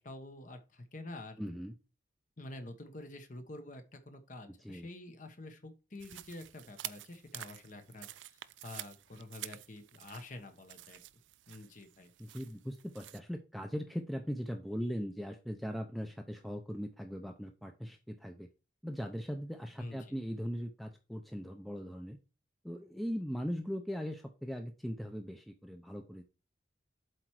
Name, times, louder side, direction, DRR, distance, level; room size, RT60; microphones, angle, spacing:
voice 1, 0.0-1.4 2.4-11.0 11.5-12.1 19.8-20.0, left 2 dB, 45° left, 7 dB, 1.1 m, -48 dB
voice 2, 1.4-1.8 4.6-4.9 12.2-18.5 18.8-22.2 22.6-26.2, equal, ahead, 4 dB, 0.6 m, -39 dB
sound 1, 6.0-13.2, right 14 dB, 85° right, 0.4 m, -49 dB
7.8 x 4.4 x 4.7 m, 0.31 s
head